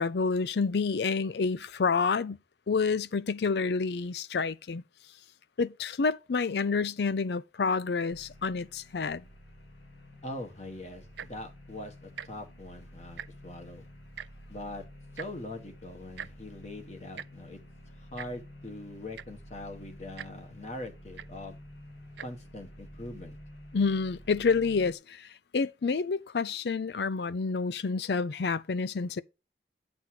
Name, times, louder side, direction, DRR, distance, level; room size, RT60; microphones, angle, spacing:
voice 1, 0.0-2.4 2.7-4.8 5.6-9.2 23.7-29.2, left 4 dB, 65° left, 0.5 m, -28 dB
sound 1, 8.1-25.0, left 1 dB, 80° left, 2.8 m, -50 dB
voice 2, 10.2-13.8 14.5-14.8 15.1-17.6 18.0-21.6 22.2-23.4, left 1 dB, 40° left, 1.6 m, -42 dB
Tick-tock, 11.1-11.4 12.1-12.3 12.6-12.7 13.0-13.5 14.2-14.3 15.2-15.3 16.2-16.3 17.2-17.3 18.2-18.3 18.9-19.0 19.1-19.5 20.2-20.3 21.2-21.3 22.1-22.3 23.0-23.1, right 9 dB, 80° right, 0.4 m, -41 dB
9.7 x 4.1 x 6.0 m
head